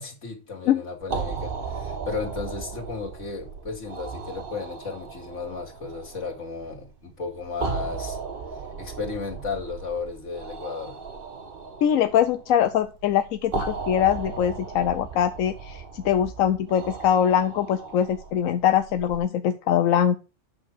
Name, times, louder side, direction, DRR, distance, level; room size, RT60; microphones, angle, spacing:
voice 1, 0.0-8.2 8.8-11.0, left 4 dB, 65° left, 2.6 m, -34 dB
sound 1, 1.0-19.2, right 5 dB, 45° right, 1.2 m, -36 dB
voice 2, 11.8-20.2, left 9 dB, 90° left, 1.1 m, -22 dB
8.6 x 6.6 x 4.7 m
omnidirectional pair, 1.4 m